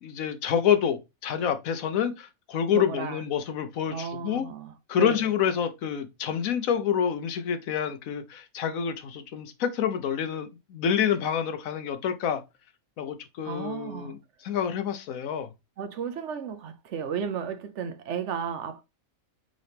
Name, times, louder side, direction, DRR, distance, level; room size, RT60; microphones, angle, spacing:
voice 1, 0.0-4.4 4.9-12.4 13.0-15.5, left 8 dB, 80° left, 1.1 m, -28 dB
voice 2, 2.7-3.2 3.9-5.3 13.4-14.1 15.8-18.8, right 7 dB, 65° right, 0.8 m, -34 dB
4.1 x 3.8 x 3.3 m
omnidirectional pair, 1.4 m